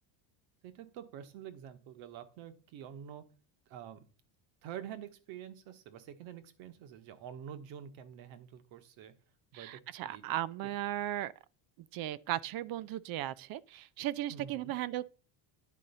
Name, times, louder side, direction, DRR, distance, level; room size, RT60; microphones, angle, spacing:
voice 1, 0.6-3.2 3.7-4.1 4.6-9.1 9.5-10.2 10.6-10.7 14.3-14.7, right 9 dB, 70° right, 1.2 m, -47 dB
voice 2, 9.5-11.3 11.9-15.1, right 13 dB, 50° right, 0.4 m, -36 dB
10.0 x 3.9 x 5.5 m
cardioid pair, 135°, 49 cm